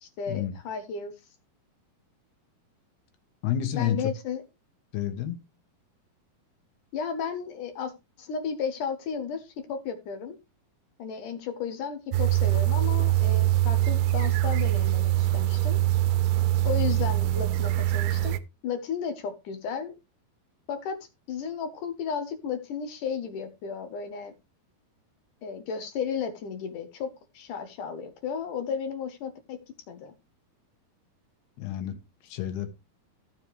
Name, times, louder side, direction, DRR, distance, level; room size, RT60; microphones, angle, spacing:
voice 1, 0.0-1.1 3.7-4.4 6.9-7.9 8.2-10.4 11.0-15.8 16.6-19.9 20.7-21.0 21.3-24.3 25.4-29.6 29.9-30.1, left 6 dB, 65° left, 2.4 m, -34 dB
voice 2, 3.4-4.1 4.9-5.4 31.6-32.7, left 10 dB, 85° left, 3.4 m, -30 dB
sound 1, 12.1-18.4, right 15 dB, 85° right, 2.7 m, -23 dB
15.0 x 6.9 x 3.1 m
omnidirectional pair, 4.5 m